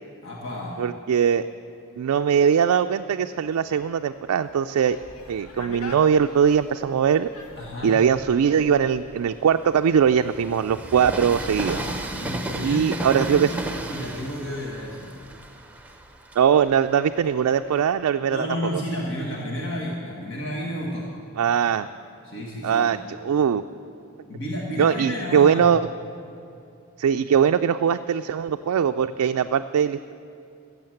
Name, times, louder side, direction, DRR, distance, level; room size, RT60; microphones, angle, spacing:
voice 1, 0.2-0.8 7.5-8.0 11.6-13.6 13.9-15.1 18.3-21.1 22.2-23.0 24.3-25.7, equal, 60° left, -2 dB, 1.5 m, -31 dB
voice 2, 0.8-1.5 2.0-5.0 5.3-7.3 7.8-11.8 12.6-13.5 16.4-18.5 18.7-18.8 21.4-21.9 22.6-23.6 24.8-25.8 27.0-30.1, right 7 dB, 80° right, 7 dB, 0.3 m, -21 dB
sound 1, 3.4-8.6, left 3 dB, 85° left, 1.4 m, -44 dB
Train, 5.0-6.6 7.2-17.8, right 1 dB, 5° right, 0.8 m, -35 dB
15.0 x 7.2 x 7.8 m, 2.7 s
head